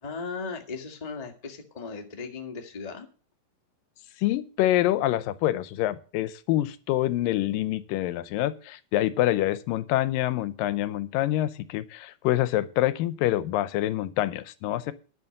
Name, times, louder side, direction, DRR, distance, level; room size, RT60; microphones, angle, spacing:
voice 1, 0.0-3.1, left 4 dB, 25° left, 4 dB, 0.8 m, -37 dB
voice 2, 4.2-14.9, left 14 dB, 80° left, 15 dB, 2.3 m, -26 dB
11.0 x 6.3 x 7.7 m, 0.37 s
omnidirectional pair, 4.1 m